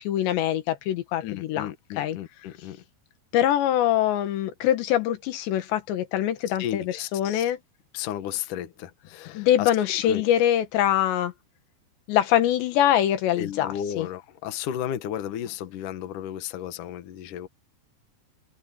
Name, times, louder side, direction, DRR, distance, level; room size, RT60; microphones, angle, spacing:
voice 1, 0.0-1.7 2.0-2.2 3.3-7.6 9.4-11.3 12.1-14.1, left 11 dB, 90° left, 3.8 m, -24 dB
voice 2, 1.2-2.8 6.6-7.5 7.9-9.7 10.0-10.2 13.4-17.5, left 10 dB, 60° left, 2.6 m, -34 dB
omnidirectional pair, 4.9 m